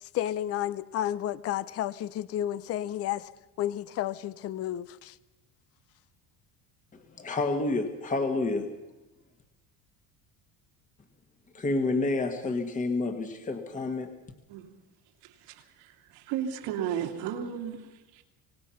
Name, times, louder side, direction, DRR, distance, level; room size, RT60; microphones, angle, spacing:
voice 1, 0.0-3.3 3.6-5.2, left 12 dB, 40° left, 18 dB, 0.6 m, -32 dB
voice 2, 6.9-8.7 11.5-14.1, left 3 dB, 20° left, 5 dB, 1.6 m, -29 dB
voice 3, 15.2-18.2, right 9 dB, 85° right, 3 dB, 3.1 m, -35 dB
25.5 x 18.5 x 5.8 m, 1.0 s
cardioid pair, 150°, 39 cm